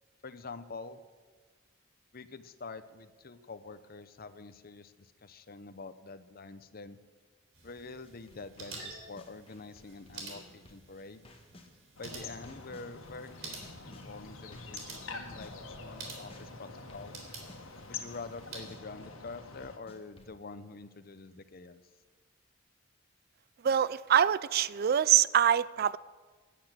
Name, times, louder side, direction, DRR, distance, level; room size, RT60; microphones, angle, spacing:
voice 1, 0.2-1.0 2.1-7.0 7.6-11.2 12.0-15.5 15.8-17.2 17.9-21.8, left 3 dB, 45° left, 12 dB, 0.8 m, -46 dB
sound 1, 7.5-18.7, right 3 dB, 75° right, 3.6 m, -49 dB
sound 2, 8.0-11.7 12.1-20.3, left 1 dB, 30° left, 1.5 m, -56 dB
sound 3, 12.0-19.8, left 4 dB, 85° left, 1.6 m, -46 dB
voice 2, 23.6-26.0, right 9 dB, 50° right, 19 dB, 0.3 m, -25 dB
12.0 x 10.0 x 9.0 m, 1.4 s
head